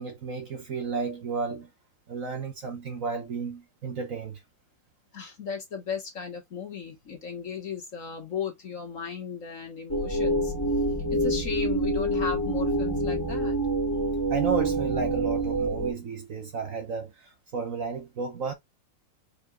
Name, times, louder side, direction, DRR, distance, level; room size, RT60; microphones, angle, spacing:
voice 1, 0.0-1.7 2.1-4.4 14.3-18.5, right 5 dB, 50° right, 1.2 m, -32 dB
voice 2, 5.1-10.5 11.1-13.6, left 6 dB, 45° left, 1.6 m, -36 dB
sound 1, 9.9-15.9, right 1 dB, 15° left, 0.8 m, -26 dB
4.8 x 4.8 x 2.3 m
omnidirectional pair, 2.0 m